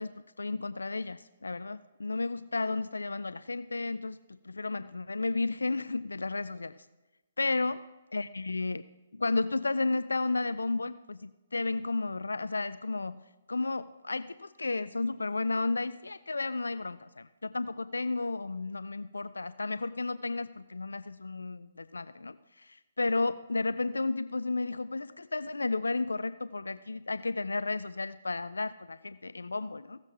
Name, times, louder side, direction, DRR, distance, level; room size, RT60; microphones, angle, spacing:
voice 1, 0.0-4.2 4.4-6.7 7.4-7.8 8.1-8.8 9.1-13.2 13.5-30.0, left 3 dB, 80° left, 14 dB, 0.3 m, -33 dB
16.5 x 7.5 x 3.5 m, 1.1 s
figure-of-eight pair, 135°, 0 cm